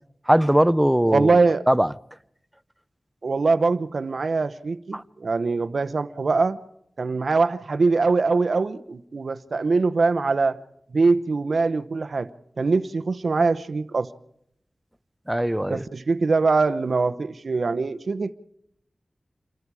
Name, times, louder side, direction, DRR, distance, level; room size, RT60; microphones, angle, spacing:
voice 1, 0.3-1.4 1.7-1.9 4.9-5.0 15.3-15.8, right 1 dB, 10° right, 0.8 m, -20 dB
voice 2, 1.1-1.7 3.2-6.6 7.0-10.6 10.9-12.3 12.6-14.1 15.7-18.3, right 4 dB, 75° right, 0.9 m, -22 dB
28.0 x 24.0 x 4.9 m
cardioid pair, 45°, 0 cm